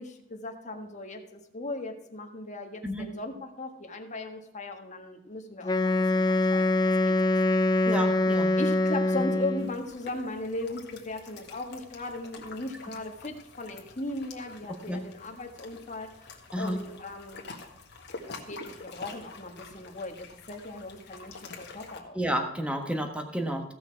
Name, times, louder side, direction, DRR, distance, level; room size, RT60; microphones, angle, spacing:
voice 1, 0.0-7.3 8.2-8.3 8.6-17.4 18.2-22.2, left 2 dB, 40° left, 4 dB, 1.5 m, -38 dB
Wind instrument woodwind instrument, 5.6-9.8, left 2 dB, 20° left, 0.6 m, -24 dB
voice 2, 7.9-8.5 14.9-15.0 16.5-16.8 22.1-23.7, equal, 5° right, 4 dB, 1.4 m, -30 dB
sound 1, 9.6-22.0, left 3 dB, 60° left, 1.7 m, -47 dB
16.0 x 6.3 x 4.6 m, 0.84 s
head